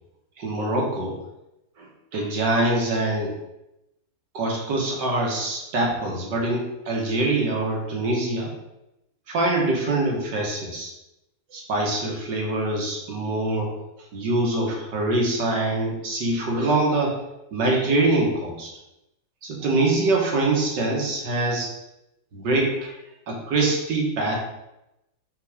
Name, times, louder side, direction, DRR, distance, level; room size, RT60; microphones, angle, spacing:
voice 1, 0.4-1.2 1.8-3.4 4.3-8.5 9.3-10.9 11.5-13.7 14.1-17.2 17.5-18.7 19.4-21.7 22.3-23.0 23.3-24.4, right 2 dB, 65° right, -1 dB, 2.0 m, -24 dB
6.0 x 4.0 x 4.9 m, 0.89 s
omnidirectional pair, 2.1 m